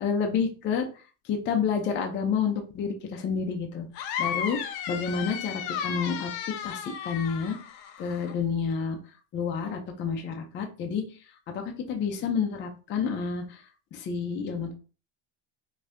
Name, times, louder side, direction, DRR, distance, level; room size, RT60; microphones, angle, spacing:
voice 1, 0.0-0.8 1.3-3.9 4.2-4.6 4.9-6.3 6.6-7.6 8.0-9.0 9.3-11.0 11.5-13.6 13.9-14.7, left 6 dB, 25° left, 3 dB, 0.5 m, -29 dB
sound 1, 3.9-8.3, left 8 dB, 70° left, 0.8 m, -34 dB
5.2 x 2.7 x 2.6 m, 0.35 s
cardioid pair, 155°, 48 cm